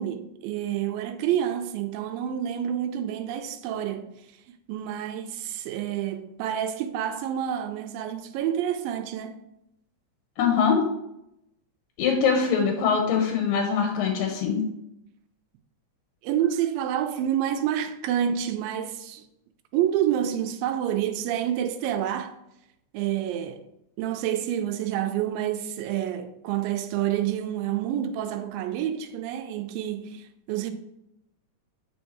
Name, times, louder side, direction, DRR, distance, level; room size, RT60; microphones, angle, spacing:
voice 1, 0.0-4.1 4.7-9.4 16.2-19.2 19.7-22.4 22.9-23.6 24.0-30.7, right 10 dB, 85° right, 2.3 m, -28 dB
voice 2, 10.4-10.8 12.0-14.6, left 6 dB, 85° left, 2.4 m, -23 dB
8.9 x 4.5 x 2.7 m
omnidirectional pair, 4.0 m